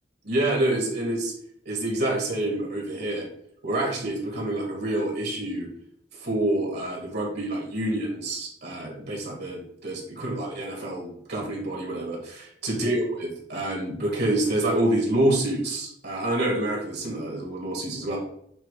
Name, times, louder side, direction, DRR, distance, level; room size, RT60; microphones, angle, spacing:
voice 1, 0.2-1.3 1.7-3.3 3.6-5.7 6.1-18.2, right 1 dB, 55° right, -1 dB, 2.1 m, -27 dB
7.7 x 3.0 x 4.9 m, 0.70 s
head